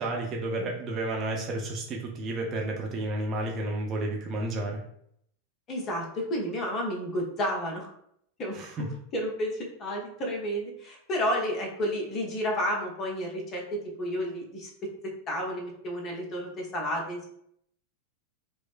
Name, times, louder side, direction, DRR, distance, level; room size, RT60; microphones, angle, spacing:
voice 1, 0.0-4.8 8.5-8.8, right 2 dB, 30° right, 0 dB, 0.6 m, -31 dB
voice 2, 5.7-7.9 8.4-8.9 9.1-14.7 15.0-17.2, equal, 30° left, 0 dB, 0.9 m, -31 dB
4.7 x 2.1 x 2.5 m, 0.70 s
figure-of-eight pair, 90°, 0 cm